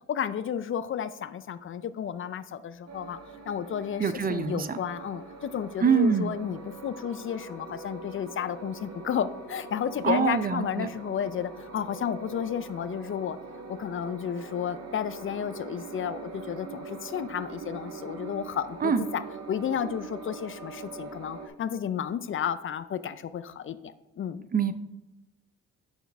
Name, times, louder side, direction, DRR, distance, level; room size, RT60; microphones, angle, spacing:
voice 1, 0.0-3.2 3.5-13.4 13.8-19.2 19.5-24.5, left 8 dB, 45° left, 14 dB, 0.4 m, -32 dB
sound 1, 2.9-21.5, right 4 dB, 55° right, 1.3 m, -43 dB
voice 2, 4.0-4.8 5.8-6.3 10.0-10.9 18.8-19.1 24.5-24.7, right 6 dB, 30° right, 12 dB, 0.5 m, -24 dB
7.0 x 6.3 x 3.4 m, 1.1 s
cardioid pair, 90°, 30 cm